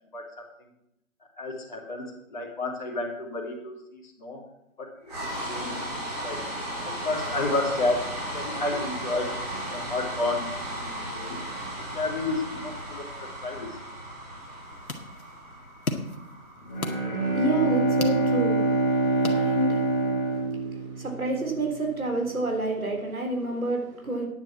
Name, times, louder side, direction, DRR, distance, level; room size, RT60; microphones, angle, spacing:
voice 1, 1.4-4.4 4.8-6.5 6.8-9.3 9.7-11.4 11.8-13.8, left 2 dB, 35° left, -3 dB, 3.0 m, -31 dB
sound 1, 5.1-19.2, right 1 dB, 30° right, 3.5 m, -36 dB
sound 2, 14.4-20.0, left 3 dB, 80° left, 2.0 m, -38 dB
Bowed string instrument, 16.6-21.5, right 2 dB, 5° left, 2.0 m, -25 dB
voice 2, 17.0-24.3, right 2 dB, 80° right, 2 dB, 3.6 m, -30 dB
9.7 x 7.3 x 7.3 m, 0.82 s
figure-of-eight pair, 170°, 42 cm